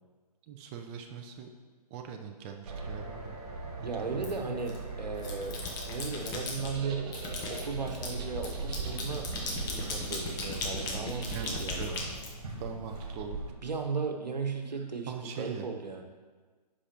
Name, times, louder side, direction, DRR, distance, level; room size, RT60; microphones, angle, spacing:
voice 1, 0.5-1.5 1.9-3.4 3.8-4.4 11.3-12.1 12.6-13.4 15.1-15.7, right 7 dB, 20° right, 4 dB, 0.4 m, -41 dB
sound 1, 2.6-13.5, right 3 dB, 65° right, 1.7 m, -41 dB
voice 2, 3.8-5.6 5.8-7.2 7.5-9.3 9.7-12.1 13.6-15.1 15.4-16.0, right 4 dB, 85° right, 4 dB, 1.1 m, -36 dB
sound 2, 4.2-4.8 5.2-6.7 7.1-12.9, left 3 dB, 20° left, 0.9 m, -38 dB
sound 3, 6.6-11.8, right 4 dB, 35° right, 0.9 m, -42 dB
11.5 x 5.0 x 2.9 m, 1.4 s
hypercardioid pair, 135°, 21 cm